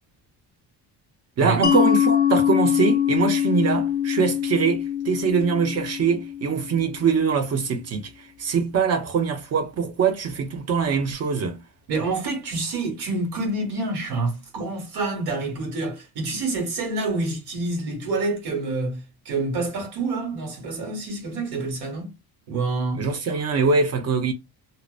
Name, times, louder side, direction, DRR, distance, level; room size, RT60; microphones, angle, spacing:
voice 1, 1.4-11.6 23.0-24.3, right 5 dB, 40° right, 0.6 m, -23 dB
Mallet percussion, 1.6-7.0, left 9 dB, 25° left, 0.4 m, -23 dB
voice 2, 11.9-22.1 22.5-23.1, right 3 dB, 80° right, 1.3 m, -27 dB
2.7 x 2.0 x 2.3 m
cardioid pair, 130°, 39 cm